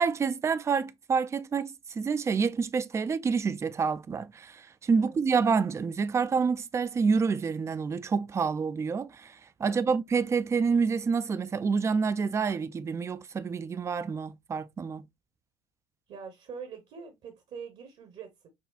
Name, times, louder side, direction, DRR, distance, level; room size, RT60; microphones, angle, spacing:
voice 1, 0.0-15.0, right 5 dB, 20° right, 0.4 m, -28 dB
voice 2, 16.1-18.5, right 6 dB, 50° right, 1.0 m, -44 dB
6.0 x 2.3 x 2.3 m
hypercardioid pair, 60°, 13 cm